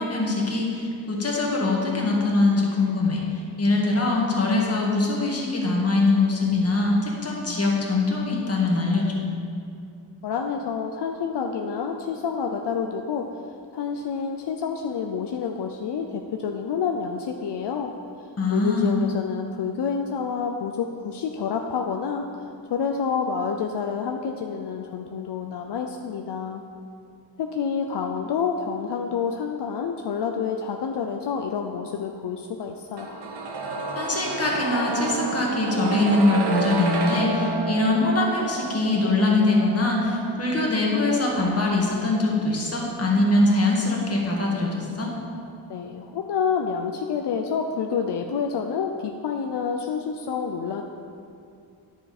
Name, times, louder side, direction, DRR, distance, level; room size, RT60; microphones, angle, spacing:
voice 1, 0.0-3.2 3.6-9.1 18.4-19.0 33.9-45.1, left 2 dB, 35° left, -2 dB, 1.6 m, -22 dB
voice 2, 10.2-13.3 13.7-17.9 18.5-22.3 22.7-26.6 27.4-33.2 45.7-50.8, left 6 dB, 75° left, 3 dB, 0.6 m, -28 dB
sound 1, 33.0-44.8 45.1-45.2, right 3 dB, 70° right, 1.0 m, -31 dB
9.9 x 7.0 x 4.2 m, 2.4 s
wide cardioid pair, 125°, 42 cm